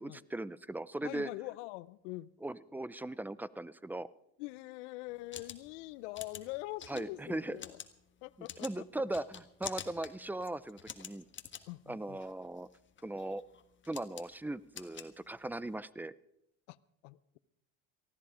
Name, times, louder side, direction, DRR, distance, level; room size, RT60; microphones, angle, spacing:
voice 1, 0.0-1.3 2.4-4.1 6.9-7.6 8.6-11.3 11.9-12.7 13.0-13.4 13.9-16.1, right 1 dB, 5° right, 0.5 m, -39 dB
voice 2, 1.0-2.3 4.4-7.8 8.2-8.8 11.7-12.2 16.7-16.8 17.0-17.4, left 19 dB, 80° left, 0.7 m, -44 dB
sound 1, 5.1-15.7, left 8 dB, 30° left, 1.5 m, -49 dB
19.0 x 14.5 x 5.0 m
supercardioid pair, 90°, 36 cm